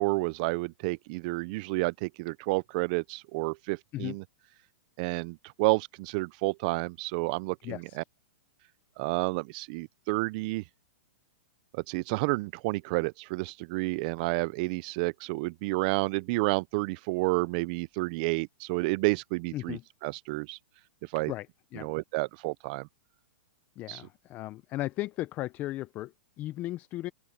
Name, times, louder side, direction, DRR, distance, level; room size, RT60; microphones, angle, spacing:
voice 1, 0.0-4.2 5.0-7.8 9.0-10.6 11.7-20.6 21.1-21.3 21.8-22.9 23.9-24.0, right 25 dB, 40° right, 0.5 m, -30 dB
voice 2, 7.6-8.0 19.5-19.8 21.3-21.5 21.7-21.9 23.8-27.1, left 16 dB, 25° left, 0.6 m, -36 dB
open air
hypercardioid pair, 145°, 7 cm